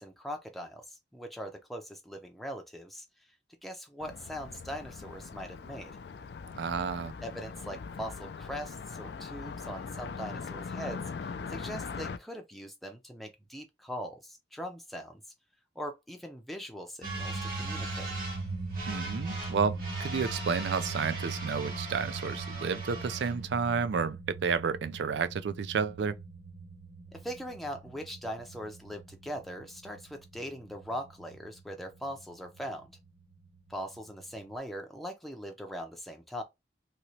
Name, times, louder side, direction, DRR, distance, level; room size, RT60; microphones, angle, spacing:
voice 1, 0.0-3.0 3.6-6.0 7.2-15.2 15.8-18.1 27.1-32.9 33.7-36.4, equal, ahead, 0.5 m, -41 dB
Car passing by, 4.0-12.2, left 5 dB, 65° left, 0.4 m, -41 dB
voice 2, 6.5-7.1 18.9-26.1, right 5 dB, 80° right, 0.4 m, -31 dB
sound 1, 17.0-34.5, right 3 dB, 50° right, 1.5 m, -39 dB
3.0 x 2.9 x 2.8 m
head